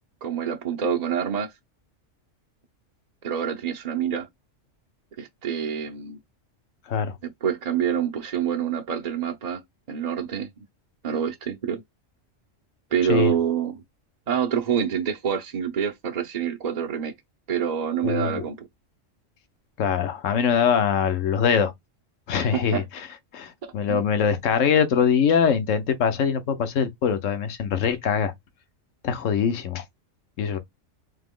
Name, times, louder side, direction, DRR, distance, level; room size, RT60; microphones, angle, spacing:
voice 1, 0.2-1.5 3.2-4.3 5.2-6.2 7.2-9.6 9.9-10.5 11.0-11.8 12.9-13.8 14.3-17.1 17.5-18.7 22.3-22.8 23.6-24.0, right 8 dB, 45° right, 0.6 m, -27 dB
voice 2, 18.0-18.4 19.8-21.7 22.3-22.8 23.3-28.3 29.0-29.8 30.4-30.6, left 7 dB, 75° left, 1.2 m, -23 dB
3.7 x 2.9 x 3.6 m
omnidirectional pair, 1.3 m